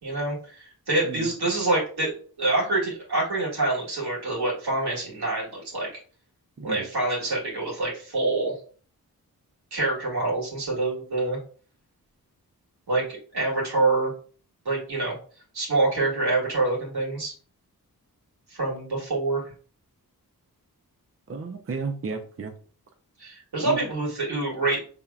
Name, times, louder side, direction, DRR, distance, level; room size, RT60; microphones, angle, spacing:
voice 1, 0.0-5.9 6.6-8.6 9.7-11.4 12.9-13.0 13.3-14.1 14.7-15.2 15.5-17.3 18.5-19.4 23.2-24.9, right 2 dB, 90° right, -4 dB, 2.0 m, -26 dB
voice 2, 6.6-6.9 21.3-22.5 23.6-23.8, right 4 dB, 35° right, 5 dB, 0.6 m, -33 dB
5.4 x 3.5 x 2.4 m, 0.42 s
wide cardioid pair, 75°, 37 cm